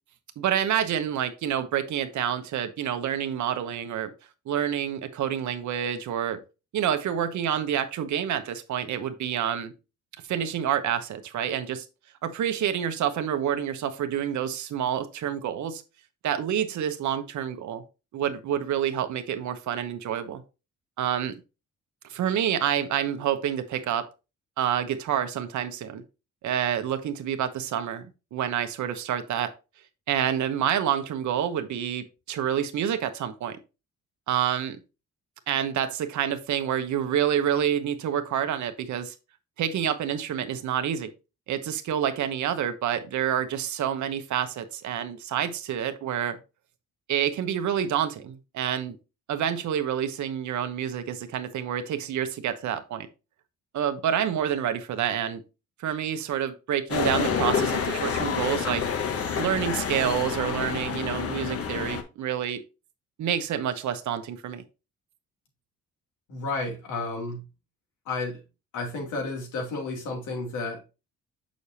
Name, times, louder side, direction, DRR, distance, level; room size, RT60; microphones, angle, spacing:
voice 1, 0.4-4.1 4.5-6.4 6.7-9.7 10.3-11.8 12.2-15.8 16.2-17.8 18.1-20.4 21.0-21.4 22.1-24.1 24.6-26.0 26.4-29.5 30.1-33.6 34.3-34.8 35.5-39.1 39.6-41.1 41.5-46.4 47.1-49.0 49.3-53.1 53.7-55.4 55.8-58.8 59.4-62.6 63.2-64.6, right 9 dB, 70° right, 10 dB, 1.0 m, -28 dB
sound 1, 56.9-62.0, left 6 dB, 50° left, 1.2 m, -28 dB
voice 2, 66.3-67.4 68.0-68.4 68.7-70.8, left 3 dB, 85° left, 1 dB, 2.7 m, -32 dB
6.6 x 6.2 x 2.8 m, 0.30 s
cardioid pair, 90°, 30 cm